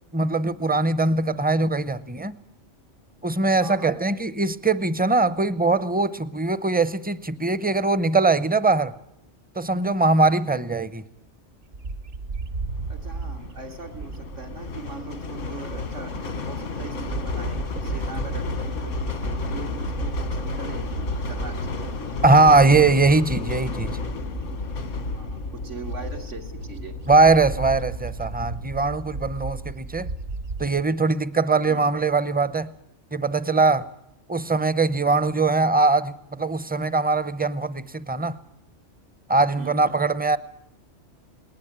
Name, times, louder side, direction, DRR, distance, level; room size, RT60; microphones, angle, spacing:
voice 1, 0.1-2.4 3.2-8.9 9.6-11.0 22.2-24.0 27.1-30.1 30.6-32.7 33.1-33.9 34.3-38.4 39.3-40.4, right 3 dB, 10° right, 0.5 m, -21 dB
voice 2, 3.6-3.9 12.9-16.2 16.5-21.9 25.1-27.0 31.7-31.9 39.6-40.1, right 4 dB, 85° right, 2.4 m, -41 dB
Bird, 11.7-16.2 16.6-30.8, right 3 dB, 60° right, 1.3 m, -35 dB
sound 1, 12.6-29.1, left 3 dB, 85° left, 1.8 m, -32 dB
20.0 x 19.0 x 8.8 m
omnidirectional pair, 1.2 m